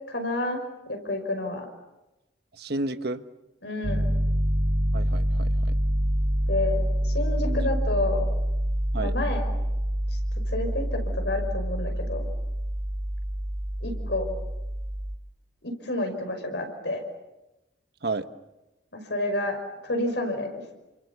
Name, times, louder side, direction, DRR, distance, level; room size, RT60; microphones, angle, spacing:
voice 1, 0.1-1.7 3.6-4.2 6.5-8.2 9.0-9.5 10.5-12.2 13.8-14.3 15.6-17.0 18.9-20.7, left 2 dB, 75° left, 5 dB, 5.7 m, -30 dB
voice 2, 2.5-3.2 4.9-5.7 7.4-7.7 8.9-9.1 18.0-18.3, right 2 dB, 60° right, 10 dB, 1.3 m, -32 dB
Piano, 3.8-15.2, equal, 75° right, 2.3 m, -26 dB
29.5 x 26.5 x 7.1 m, 1.0 s
head